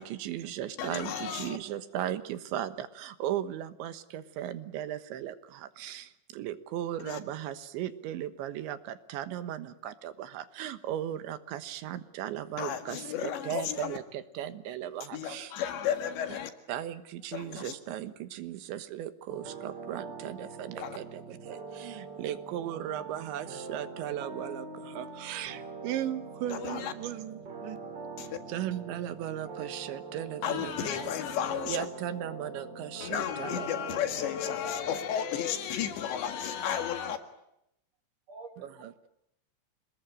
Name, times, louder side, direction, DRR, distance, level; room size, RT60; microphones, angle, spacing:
voice 1, 0.0-15.5 16.7-27.8 28.5-30.9 31.7-33.7 38.6-38.9, right 11 dB, 75° right, 3.5 m, -37 dB
voice 2, 0.8-1.6 7.0-7.2 12.6-14.0 15.1-16.5 17.3-17.8 20.8-21.0 26.5-26.9 28.2-28.4 30.4-31.9 33.0-37.2, left 9 dB, 70° left, 4.0 m, -33 dB
sound 1, 19.3-34.5, right 4 dB, 35° right, 2.0 m, -43 dB
voice 3, 21.1-22.0 30.1-30.3 34.5-35.0 37.1-37.2 38.3-39.1, right 3 dB, 55° right, 2.0 m, -52 dB
27.5 x 20.5 x 9.0 m
omnidirectional pair, 5.5 m